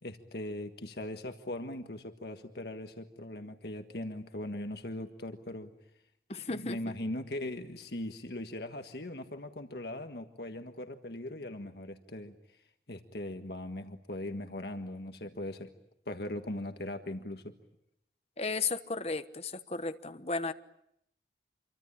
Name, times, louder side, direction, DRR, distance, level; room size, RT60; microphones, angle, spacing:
voice 1, 0.0-5.7 6.3-12.4 12.9-15.7 16.0-17.5, left 1 dB, 65° left, 1.6 m, -40 dB
voice 2, 6.3-6.8 18.4-20.5, left 4 dB, 35° left, 1.2 m, -34 dB
27.0 x 24.0 x 8.8 m
head